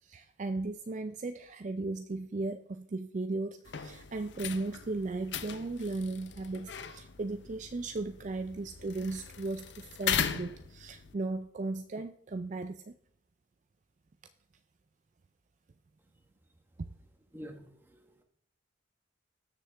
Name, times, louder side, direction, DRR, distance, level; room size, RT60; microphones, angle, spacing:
voice 1, 0.0-12.9 16.8-16.9, right 3 dB, 40° right, 9 dB, 0.4 m, -36 dB
sound 1, 3.6-11.1, left 8 dB, 60° left, 0.6 m, -38 dB
voice 2, 17.3-18.2, equal, 10° right, 4 dB, 1.2 m, -48 dB
19.5 x 6.6 x 3.4 m, 0.68 s
head